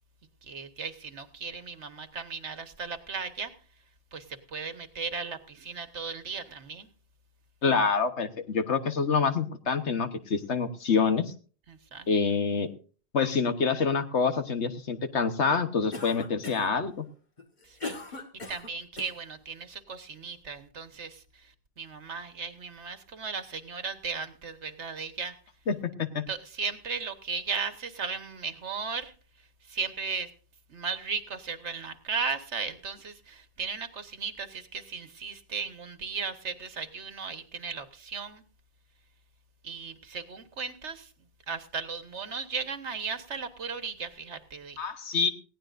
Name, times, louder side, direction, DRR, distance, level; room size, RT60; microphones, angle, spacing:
voice 1, 0.4-3.5 4.1-6.9 11.7-12.1 17.6-18.0 18.5-25.4 26.3-29.1 29.7-30.3 30.7-38.4 39.6-41.1 41.5-44.8, right 5 dB, 85° right, 9 dB, 1.7 m, -36 dB
voice 2, 7.6-11.2 12.1-12.7 13.1-17.0 25.7-26.2 44.8-45.3, left 5 dB, 80° left, 8 dB, 1.5 m, -26 dB
Cough, 15.9-16.8 17.4-19.2, left 3 dB, 40° left, 1.8 m, -39 dB
19.5 x 16.5 x 2.6 m, 0.40 s
omnidirectional pair, 1.2 m